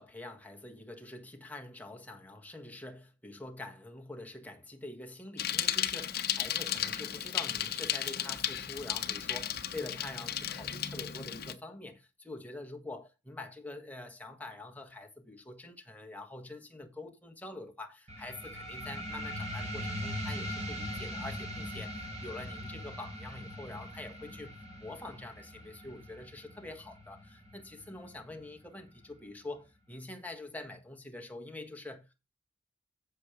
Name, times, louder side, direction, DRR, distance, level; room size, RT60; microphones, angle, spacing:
voice 1, 0.0-32.2, left 2 dB, 10° left, 1.5 m, -45 dB
Bicycle, 5.4-11.5, left 10 dB, 55° left, 0.9 m, -34 dB
sound 1, 18.1-29.1, equal, 35° right, 3.5 m, -41 dB
7.4 x 6.8 x 4.8 m
head